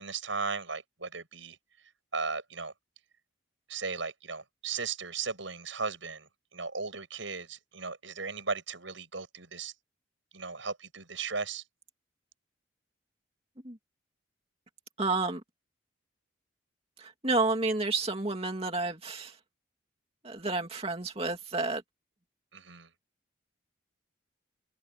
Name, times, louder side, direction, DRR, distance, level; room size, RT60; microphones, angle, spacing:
voice 1, 0.0-1.6 2.1-2.7 3.7-9.7 10.3-11.6 22.5-22.9, right 4 dB, 80° right, 6.4 m, -36 dB
voice 2, 15.0-15.4 17.0-19.4 20.2-21.8, right 3 dB, 30° right, 2.6 m, -30 dB
head